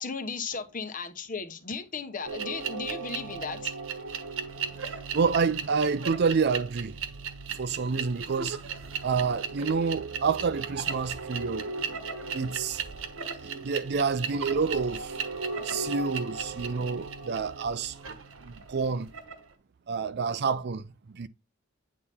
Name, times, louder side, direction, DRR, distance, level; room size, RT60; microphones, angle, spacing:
voice 1, 0.0-3.7, left 5 dB, 40° left, 1.0 m, -35 dB
sound 1, 2.2-19.5, right 5 dB, 75° right, 1.2 m, -36 dB
voice 2, 5.1-7.0 7.5-8.6 9.0-11.7 12.3-12.8 13.5-15.2 15.6-18.0 18.4-19.1 19.9-21.3, right 5 dB, 55° right, 0.5 m, -28 dB
8.7 x 4.2 x 3.5 m
head